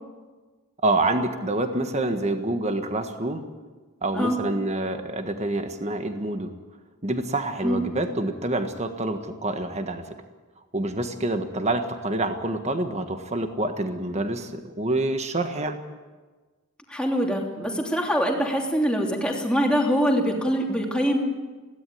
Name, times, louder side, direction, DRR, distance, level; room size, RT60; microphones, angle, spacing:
voice 1, 0.8-3.5 4.0-6.5 7.0-10.0 10.7-15.8, right 2 dB, 30° right, 7 dB, 1.6 m, -27 dB
voice 2, 16.9-21.2, equal, 5° left, 0 dB, 3.1 m, -24 dB
22.0 x 17.0 x 9.4 m, 1.3 s
head